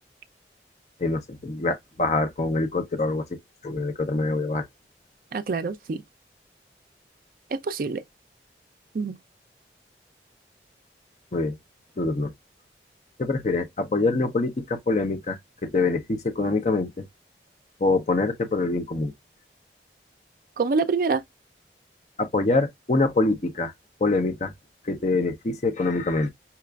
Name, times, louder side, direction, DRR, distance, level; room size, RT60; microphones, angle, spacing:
voice 1, 1.0-3.4 3.6-4.7 11.3-11.6 12.0-12.3 13.2-17.0 17.8-19.1 22.2-23.7 24.0-24.5 24.8-26.3, left 3 dB, 40° left, 0.5 m, -25 dB
voice 2, 5.3-6.0 7.5-8.0 8.9-9.2 20.6-21.2, right 4 dB, 50° right, 0.3 m, -26 dB
5.7 x 2.4 x 2.2 m
head